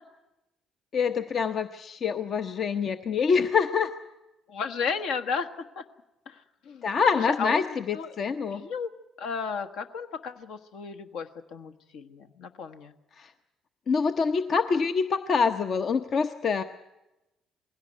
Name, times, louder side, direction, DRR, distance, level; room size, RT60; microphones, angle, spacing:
voice 1, 0.9-3.9 6.8-8.6 13.2-13.3 13.9-16.6, left 5 dB, 50° left, 9 dB, 0.8 m, -25 dB
voice 2, 4.5-5.5 5.8-5.9 6.3-6.9 7.3-7.7 7.9-8.1 8.5-8.9 9.2-12.9, left 5 dB, 65° left, 8 dB, 1.3 m, -33 dB
20.5 x 17.0 x 9.4 m, 0.97 s
hypercardioid pair, 50°, 0 cm